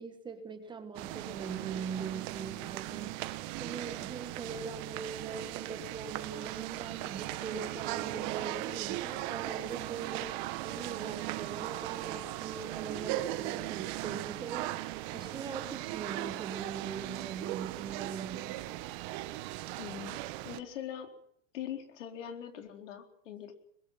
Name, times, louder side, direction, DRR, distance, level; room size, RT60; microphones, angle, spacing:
voice 1, 0.0-3.3 3.6-10.4 10.6-18.6, right 5 dB, 10° right, 8 dB, 1.5 m, -41 dB
sound 1, 0.9-20.6, right 17 dB, 40° right, 1.3 m, -38 dB
voice 2, 19.8-21.1 21.5-23.5, left 9 dB, 75° left, 4 dB, 4.2 m, -42 dB
24.0 x 21.5 x 5.7 m, 0.67 s
supercardioid pair, 150°, 37 cm